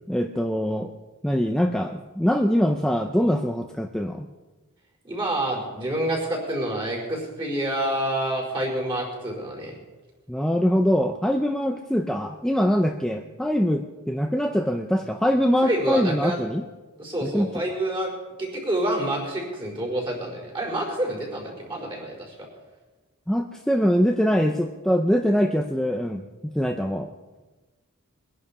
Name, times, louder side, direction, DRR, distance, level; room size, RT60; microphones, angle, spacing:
voice 1, 0.1-0.9 1.2-4.3 10.3-16.6 17.2-17.5 23.3-27.1, equal, 5° left, 4 dB, 0.6 m, -23 dB
voice 2, 5.0-9.7 15.6-16.4 17.0-18.1 18.4-22.3, right 1 dB, 25° right, -3 dB, 4.7 m, -28 dB
22.0 x 11.0 x 5.0 m, 1.2 s
head